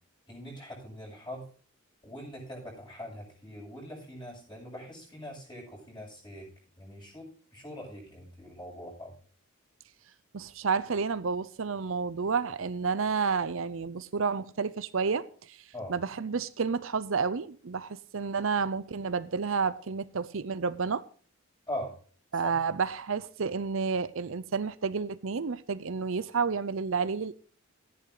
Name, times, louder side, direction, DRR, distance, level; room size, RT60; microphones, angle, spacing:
voice 1, 0.3-1.5 2.0-6.5 6.8-9.1 15.7-15.9 21.7-21.9 22.4-22.5, equal, 20° left, 7.2 m, -42 dB
voice 2, 10.3-21.0 22.3-27.4, right 5 dB, 70° right, 0.6 m, -30 dB
14.0 x 11.0 x 3.9 m
head